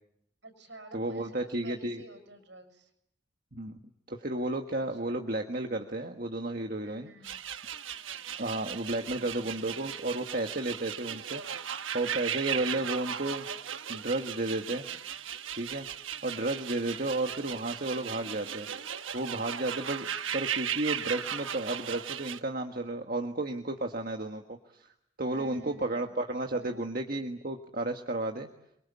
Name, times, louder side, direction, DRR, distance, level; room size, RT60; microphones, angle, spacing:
voice 1, 0.4-2.9 4.7-5.4 6.8-7.4 8.8-9.8 12.2-12.9 25.3-26.8, right 2 dB, 65° right, 7 dB, 6.9 m, -51 dB
voice 2, 0.9-2.0 3.5-3.8 4.1-7.1 8.4-11.6 11.9-13.5 13.9-14.9 15.5-15.9 16.2-18.7 19.1-20.1 20.3-24.9 25.2-28.5, right 2 dB, 45° right, 4 dB, 1.6 m, -33 dB
Alien junkyard, 7.2-22.4, right 9 dB, 85° right, 1.2 m, -37 dB
28.0 x 23.5 x 8.6 m, 0.79 s
head